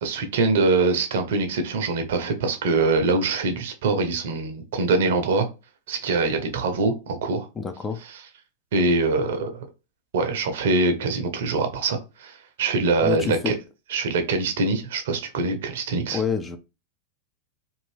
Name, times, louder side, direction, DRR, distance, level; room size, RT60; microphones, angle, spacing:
voice 1, 0.0-5.5 5.9-7.5 8.1-8.2 8.7-9.6 10.1-13.5 13.9-16.2, right 3 dB, 55° right, 6 dB, 0.7 m, -23 dB
voice 2, 7.6-8.0 13.0-13.5 16.1-16.6, left 6 dB, 15° left, 7 dB, 0.4 m, -27 dB
2.7 x 2.5 x 3.2 m, 0.28 s
figure-of-eight pair, 90°, 0 cm